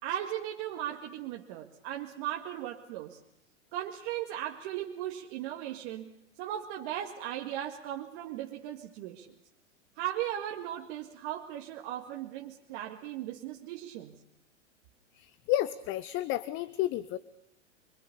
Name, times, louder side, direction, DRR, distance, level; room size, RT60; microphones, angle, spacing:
voice 1, 0.0-3.2 3.7-6.1 6.4-9.3 10.0-14.2, right 12 dB, 45° right, 1 dB, 2.1 m, -37 dB
voice 2, 15.1-17.2, left 14 dB, 35° left, 16 dB, 0.9 m, -31 dB
26.0 x 24.5 x 7.0 m, 0.80 s
hypercardioid pair, 105°, 37 cm